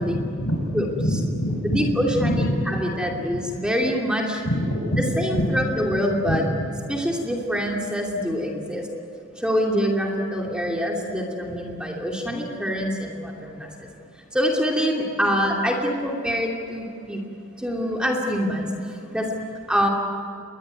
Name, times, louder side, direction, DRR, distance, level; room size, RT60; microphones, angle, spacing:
voice 1, 0.0-2.4 3.0-3.1 4.4-5.5 5.9-6.0 6.2-6.7 15.2-15.4, equal, 70° left, 3 dB, 6.0 m, -26 dB
voice 2, 1.6-4.4 5.0-6.4 6.9-8.9 9.4-13.9 14.3-17.2 17.6-19.4 19.7-19.9, equal, 5° right, -1 dB, 2.8 m, -25 dB
28.5 x 22.5 x 9.2 m, 2.8 s
head